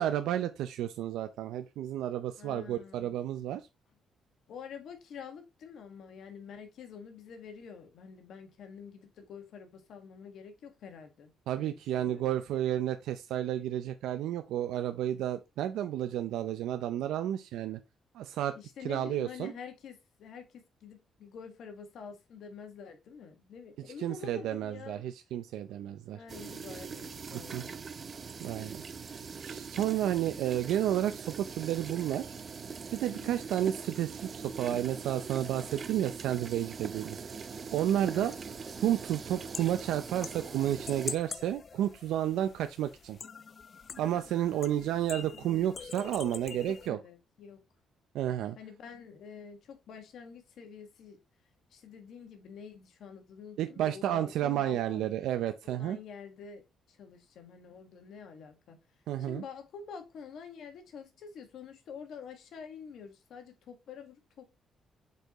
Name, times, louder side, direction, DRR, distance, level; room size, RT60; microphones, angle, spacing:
voice 1, 0.0-3.6 11.5-17.8 18.1-18.5 18.8-19.5 24.0-26.2 27.3-27.6 28.4-28.8 29.4-32.3 32.9-37.2 37.7-38.3 38.8-43.2 44.0-47.0 48.1-48.6 53.6-56.0 59.1-59.4, right 11 dB, 85° right, 0.5 m, -31 dB
voice 2, 2.4-3.2 4.5-11.3 11.6-12.3 18.5-25.0 26.1-27.8 33.1-33.5 38.1-38.4 45.3-46.0 46.6-47.6 48.5-51.2 51.7-55.1 55.6-58.8 59.2-64.5, left 6 dB, 75° left, 1.6 m, -47 dB
sound 1, 26.3-41.2, right 5 dB, 40° right, 0.6 m, -42 dB
sound 2, 37.7-46.9, left 5 dB, 45° left, 0.5 m, -46 dB
8.1 x 4.6 x 3.0 m
cardioid pair, 90°, 0 cm